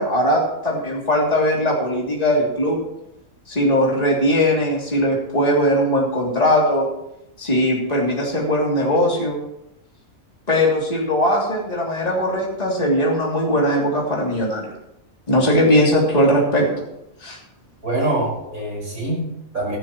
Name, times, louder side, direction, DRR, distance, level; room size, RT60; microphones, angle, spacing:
voice 1, 0.0-2.8 3.5-6.9 7.4-9.4 10.5-14.7 15.3-16.7 17.2-17.4, equal, 25° left, -3 dB, 3.0 m, -19 dB
voice 2, 17.8-19.8, right 1 dB, 85° right, -2 dB, 5.7 m, -24 dB
18.0 x 14.5 x 3.1 m, 0.85 s
omnidirectional pair, 1.5 m